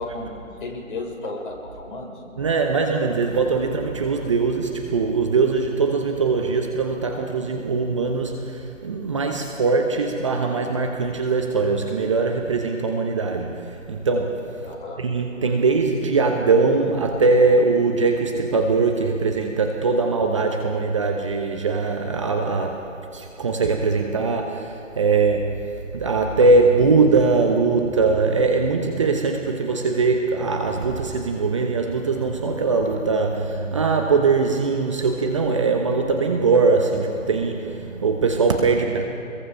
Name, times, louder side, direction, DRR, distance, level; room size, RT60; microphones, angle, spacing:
voice 1, 0.0-2.2 14.6-15.0, left 2 dB, 40° left, -1 dB, 5.8 m, -33 dB
voice 2, 2.4-14.6 15.0-39.0, right 4 dB, 25° right, 3 dB, 1.1 m, -21 dB
27.5 x 22.0 x 5.7 m, 2.6 s
figure-of-eight pair, 160°, 41 cm